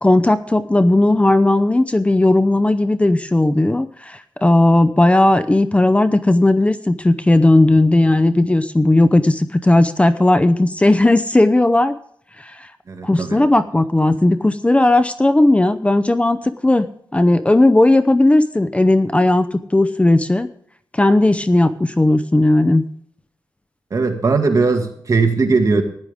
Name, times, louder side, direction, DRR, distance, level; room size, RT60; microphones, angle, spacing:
voice 1, 0.0-12.0 12.4-12.7 13.0-16.9 17.1-20.5 20.9-22.8, left 2 dB, 15° left, 11 dB, 0.6 m, -15 dB
voice 2, 12.9-13.4 23.9-25.8, right 4 dB, 50° right, 5 dB, 2.0 m, -18 dB
15.0 x 11.0 x 3.6 m, 0.63 s
cardioid pair, 85°, 8 cm